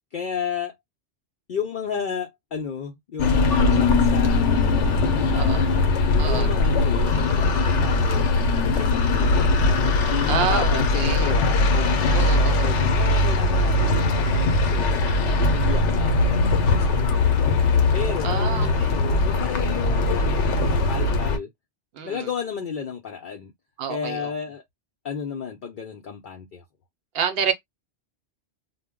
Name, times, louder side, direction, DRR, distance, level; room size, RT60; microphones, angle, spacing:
voice 1, 0.1-0.7 1.5-4.6 5.1-5.6 6.1-9.5 10.1-15.0 15.5-17.1 17.9-21.5 22.0-23.5 23.9-24.6 25.0-26.6, left 6 dB, 55° left, 0.6 m, -33 dB
sound 1, 3.2-21.4, left 3 dB, 80° left, 0.9 m, -20 dB
voice 2, 6.2-6.5 10.3-11.3 12.1-12.6 15.1-15.6 18.2-18.9 21.9-22.3 23.8-24.3 27.1-27.5, right 7 dB, 60° right, 0.8 m, -28 dB
2.2 x 2.0 x 3.5 m
omnidirectional pair, 1.2 m